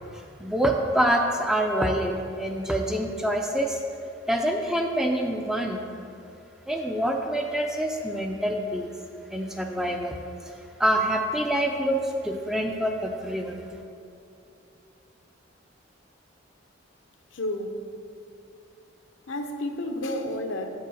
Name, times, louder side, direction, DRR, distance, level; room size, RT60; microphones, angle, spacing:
voice 1, 0.1-3.8 4.3-5.9 6.7-8.9 9.3-10.2 10.8-13.7, equal, 5° right, 2 dB, 0.4 m, -26 dB
voice 2, 17.3-17.8 19.3-20.7, left 1 dB, 75° left, 5 dB, 0.8 m, -31 dB
6.8 x 5.6 x 6.3 m, 2.7 s
head